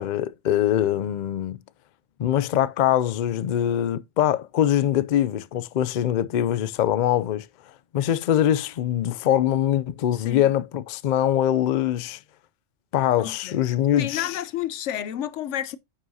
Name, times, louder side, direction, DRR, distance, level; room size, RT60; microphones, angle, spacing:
voice 1, 0.0-1.6 2.2-7.5 7.9-12.2 12.9-14.4, left 11 dB, 60° left, 0.5 m, -23 dB
voice 2, 10.1-10.5 13.2-13.6 14.0-15.8, left 11 dB, 80° left, 1.0 m, -31 dB
9.3 x 5.7 x 2.8 m
omnidirectional pair, 1.2 m